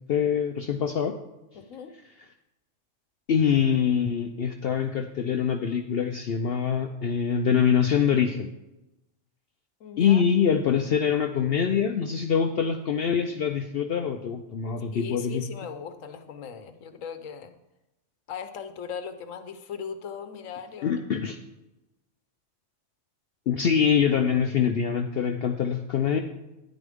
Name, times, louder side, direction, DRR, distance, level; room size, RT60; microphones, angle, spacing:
voice 1, 0.1-1.2 3.3-8.5 10.0-15.4 20.8-21.4 23.5-26.2, left 7 dB, 60° left, 5 dB, 0.7 m, -24 dB
voice 2, 1.5-1.9 9.8-10.2 14.9-17.5 18.3-21.0, left 7 dB, 80° left, 9 dB, 1.2 m, -38 dB
9.9 x 9.8 x 3.6 m, 0.97 s
omnidirectional pair, 1.4 m